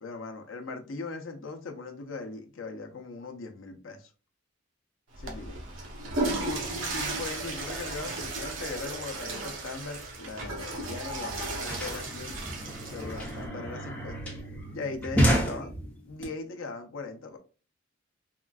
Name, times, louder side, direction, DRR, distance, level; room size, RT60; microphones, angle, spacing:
voice 1, 0.0-4.1 5.2-5.6 6.2-12.4 12.9-14.3 14.7-15.8 16.0-17.4, left 3 dB, 80° left, 0.6 m, -39 dB
Water / Toilet flush, 5.1-13.5, right 2 dB, 75° right, 0.8 m, -35 dB
sound 1, 10.8-10.9 11.0-16.2, equal, 5° left, 0.8 m, -30 dB
3.7 x 2.3 x 2.3 m
head